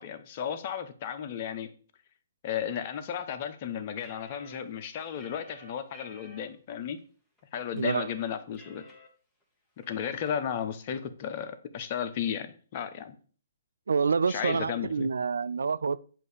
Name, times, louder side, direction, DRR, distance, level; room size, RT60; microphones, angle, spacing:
voice 1, 0.0-1.7 2.4-7.0 7.5-8.8 9.9-13.2 14.3-15.1, left 8 dB, 40° left, 0.7 m, -34 dB
sound 1, 4.0-6.4 7.0-7.1 7.4-9.1 9.4-9.5 9.8-10.3, left 1 dB, 10° left, 1.3 m, -52 dB
voice 2, 7.7-8.1 13.9-16.0, right 5 dB, 80° right, 0.3 m, -27 dB
7.5 x 2.7 x 4.9 m
hypercardioid pair, 140°, 0 cm